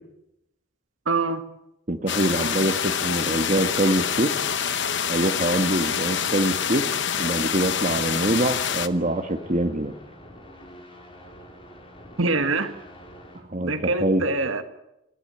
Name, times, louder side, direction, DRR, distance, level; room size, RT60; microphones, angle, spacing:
voice 1, 1.0-1.4 12.2-12.7 13.6-14.6, right 3 dB, 70° right, 9 dB, 1.6 m, -24 dB
voice 2, 1.9-4.3 5.1-6.9 7.2-9.9 13.5-14.2, right 1 dB, 35° right, 6 dB, 1.5 m, -24 dB
sound 1, 2.1-8.9, left 8 dB, 55° left, 1.0 m, -26 dB
sound 2, 7.3-13.4, equal, 25° left, 4.4 m, -46 dB
29.5 x 14.5 x 9.2 m, 0.88 s
head